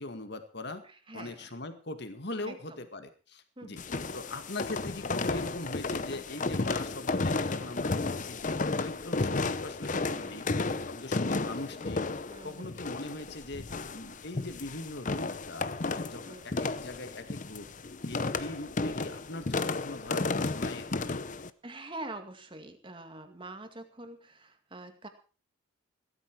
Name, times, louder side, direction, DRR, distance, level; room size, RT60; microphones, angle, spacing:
voice 1, 0.0-0.8 1.1-3.8 4.1-10.5 10.8-12.0 12.4-17.7 18.0-20.9, left 2 dB, 55° left, 8 dB, 2.1 m, -41 dB
voice 2, 0.8-1.5 2.4-2.8 3.6-3.9 9.9-10.8 12.3-12.7 16.2-16.6 18.2-18.4 21.6-25.1, right 2 dB, 25° right, 7 dB, 2.1 m, -45 dB
sound 1, 3.8-21.5, left 3 dB, 40° left, 0.7 m, -33 dB
17.0 x 13.0 x 4.7 m, 0.36 s
head